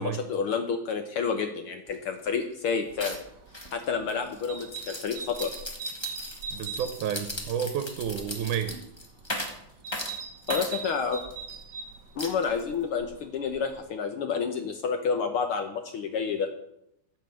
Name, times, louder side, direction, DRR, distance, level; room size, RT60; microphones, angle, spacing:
voice 1, 0.0-3.2 3.7-5.5 10.5-11.2 12.2-16.5, left 6 dB, 75° left, 6 dB, 1.3 m, -29 dB
sound 1, 1.9-2.0 2.3-2.6 3.0-11.5 12.2-12.9, left 1 dB, 45° left, 0.3 m, -38 dB
sound 2, 2.9-13.8, right 5 dB, 55° right, 1.3 m, -42 dB
voice 2, 6.5-8.8, right 8 dB, 85° right, 9 dB, 2.3 m, -31 dB
14.5 x 5.7 x 7.6 m, 0.79 s
omnidirectional pair, 3.5 m